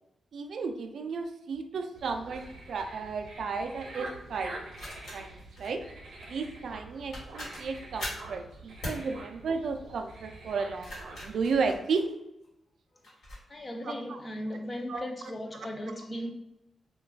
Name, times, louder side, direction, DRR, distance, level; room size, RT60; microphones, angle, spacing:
voice 1, 0.3-4.5 5.1-5.8 6.3-12.0 13.8-14.2 14.9-15.0, right 4 dB, 60° right, 0.3 m, -33 dB
sound 1, 2.0-11.8, right 2 dB, 85° right, 0.7 m, -46 dB
sound 2, 2.3-2.5 4.7-5.7 6.8-6.9 7.1-8.3 8.8-9.1 10.6-12.5 13.0-13.4, equal, 70° left, 1.4 m, -41 dB
voice 2, 13.5-16.3, equal, 25° left, 0.4 m, -37 dB
2.3 x 2.2 x 3.3 m
wide cardioid pair, 175°, 0 cm